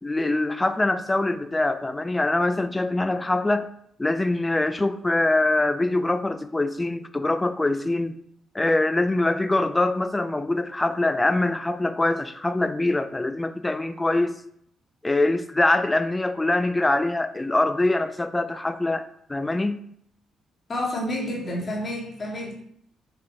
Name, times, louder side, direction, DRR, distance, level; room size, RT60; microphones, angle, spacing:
voice 1, 0.0-3.7 4.0-8.2 8.5-14.4 15.0-19.8, left 2 dB, 20° left, 0.3 m, -24 dB
voice 2, 20.7-22.5, left 1 dB, 40° left, 1.4 m, -29 dB
4.2 x 2.6 x 4.8 m
supercardioid pair, 65°, 0 cm